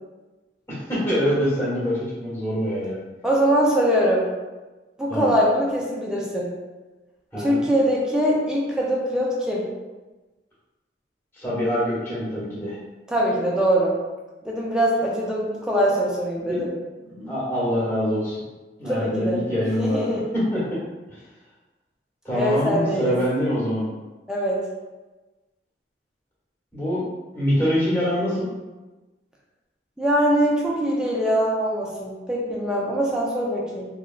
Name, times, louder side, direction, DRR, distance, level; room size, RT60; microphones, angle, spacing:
voice 1, 0.7-3.0 5.1-5.3 7.3-7.6 11.3-12.8 16.5-16.6 17.1-18.4 18.8-20.8 21.1-21.2 22.2-23.9 26.7-27.0 27.3-28.5, equal, 15° left, -8 dB, 1.1 m, -24 dB
voice 2, 3.2-4.3 5.0-6.5 7.4-9.7 13.1-14.0 14.4-16.7 18.8-19.4 19.8-20.2 22.3-23.1 24.3-24.6 30.0-33.9, equal, 5° right, -4 dB, 0.5 m, -22 dB
3.1 x 2.3 x 2.4 m, 1.2 s
head